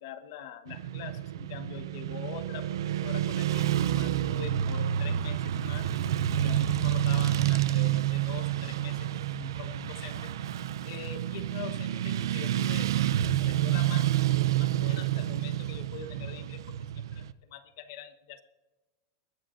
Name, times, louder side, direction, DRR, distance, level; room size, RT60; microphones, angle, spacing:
voice 1, 0.0-5.9 6.3-10.3 10.8-18.4, left 8 dB, 50° left, 9 dB, 1.2 m, -44 dB
Motorcycle / Traffic noise roadway noise, 0.7-17.3, right 12 dB, 90° right, 0.5 m, -29 dB
sound 1, 3.6-14.4, equal, 5° left, 4.4 m, -61 dB
21.0 x 15.0 x 2.6 m, 1.1 s
supercardioid pair, 175°, 2 cm